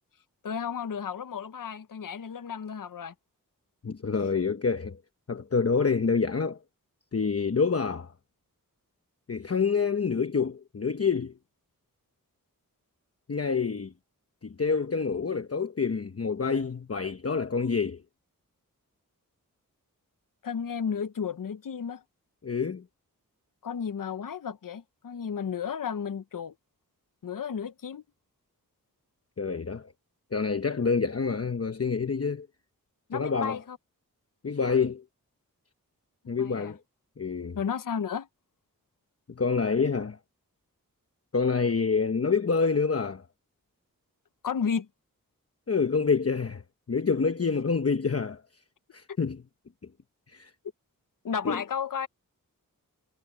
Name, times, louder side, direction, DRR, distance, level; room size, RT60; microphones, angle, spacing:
voice 1, 0.4-3.1 20.4-22.0 23.6-26.5 27.2-28.0 33.1-33.8 36.4-36.7 37.6-38.3 44.4-44.9 51.2-52.1, left 7 dB, 70° left, 0.8 m, -33 dB
voice 2, 3.8-5.0 5.3-6.6 7.1-8.1 9.3-11.3 13.3-13.9 14.4-18.0 22.4-22.8 29.4-29.9 30.3-32.5 33.1-33.6 34.4-35.0 36.3-36.8 37.2-37.6 39.3-40.2 41.3-43.2 45.7-46.6 46.9-48.4 48.9-49.4 50.3-50.5 51.4-51.6, left 5 dB, 45° left, 1.0 m, -27 dB
wide cardioid pair, 65°, 34 cm